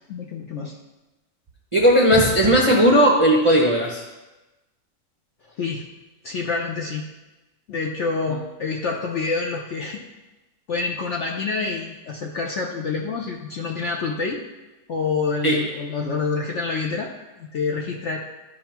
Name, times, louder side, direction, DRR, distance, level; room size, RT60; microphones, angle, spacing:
voice 1, 0.1-0.7 5.6-5.9 6.2-7.0 7.7-10.0 10.7-14.4 14.9-17.1 17.4-18.2, left 4 dB, 60° left, 0 dB, 0.8 m, -27 dB
voice 2, 1.7-4.0 15.4-15.6, equal, 30° right, -3 dB, 0.6 m, -16 dB
12.5 x 5.3 x 3.0 m, 1.1 s
omnidirectional pair, 1.8 m